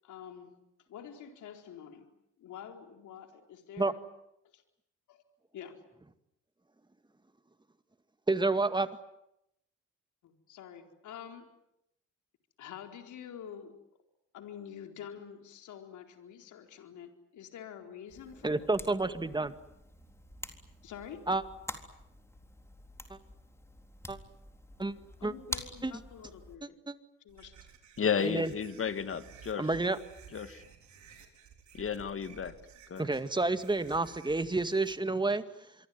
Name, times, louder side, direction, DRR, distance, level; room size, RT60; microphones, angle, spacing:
voice 1, 0.0-0.6 0.9-2.1 2.4-4.0 4.5-4.6 5.1-5.2 5.5-5.8 10.2-11.5 12.6-13.8 14.3-18.7 20.8-21.3 25.2-26.8 27.2-27.5, left 8 dB, 75° left, 5 dB, 4.3 m, -47 dB
voice 2, 8.3-8.9 18.4-19.6 21.3-21.4 23.1-23.2 24.1-24.2 24.8-24.9 25.2-25.3 25.8-26.0 26.6-26.9 28.2-28.5 29.6-30.0 33.0-35.4, right 3 dB, 15° right, 11 dB, 2.0 m, -29 dB
sound 1, 18.1-26.6, left 1 dB, 10° left, 3.8 m, -47 dB
sound 2, 27.3-34.9, right 7 dB, 70° right, 5.5 m, -54 dB
voice 3, 28.0-29.7 30.3-30.6 31.7-32.5 32.9-33.1, left 7 dB, 45° left, 11 dB, 2.4 m, -32 dB
26.5 x 23.5 x 9.5 m, 0.80 s
cardioid pair, 90°, 30 cm